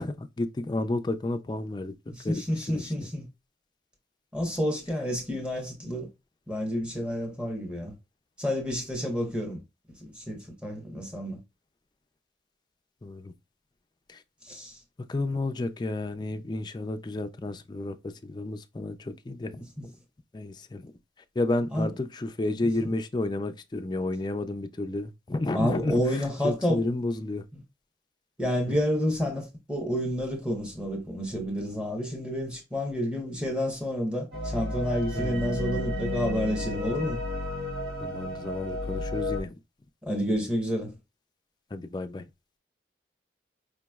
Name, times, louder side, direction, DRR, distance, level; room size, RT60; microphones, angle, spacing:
voice 1, 0.0-1.9 2.2-2.4 2.7-3.1 13.0-13.3 14.1-14.2 15.1-19.9 20.3-20.9 21.4-27.4 28.7-28.8 35.1-35.6 38.0-39.5 41.7-42.2, left 2 dB, 25° left, 0.3 m, -31 dB
voice 2, 2.1-3.3 4.3-6.1 6.5-7.9 8.4-9.6 10.0-11.4 14.4-14.8 19.8-19.9 21.7-21.9 22.6-22.9 25.5-26.8 28.4-37.2 40.0-40.9, equal, 5° right, 1.0 m, -29 dB
sound 1, 34.3-39.4, left 1 dB, 60° right, 1.1 m, -32 dB
5.1 x 3.0 x 2.3 m
head